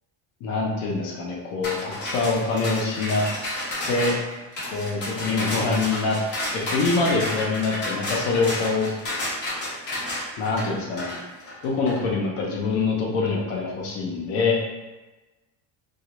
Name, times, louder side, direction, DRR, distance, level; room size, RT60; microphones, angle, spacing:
voice 1, 0.4-3.2 3.9-4.1 4.7-6.2 6.5-8.9 10.4-11.2 11.6-14.6, left 4 dB, 85° left, -2 dB, 0.7 m, -25 dB
sound 1, 1.6-12.0, left 1 dB, 25° left, 0.4 m, -31 dB
2.3 x 2.0 x 2.8 m, 1.1 s
cardioid pair, 180°, 47 cm